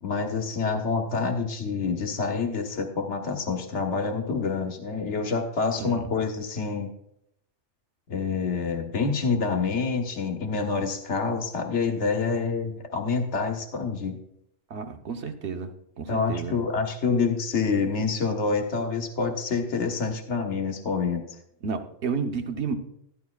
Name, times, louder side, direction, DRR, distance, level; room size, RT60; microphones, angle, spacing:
voice 1, 0.0-6.9 8.1-14.2 16.1-21.2, left 4 dB, 65° left, 4 dB, 1.5 m, -27 dB
voice 2, 14.7-15.7 16.0-16.5 21.6-22.7, right 5 dB, 65° right, 5 dB, 1.2 m, -31 dB
13.5 x 11.5 x 2.3 m, 0.75 s
omnidirectional pair, 1.3 m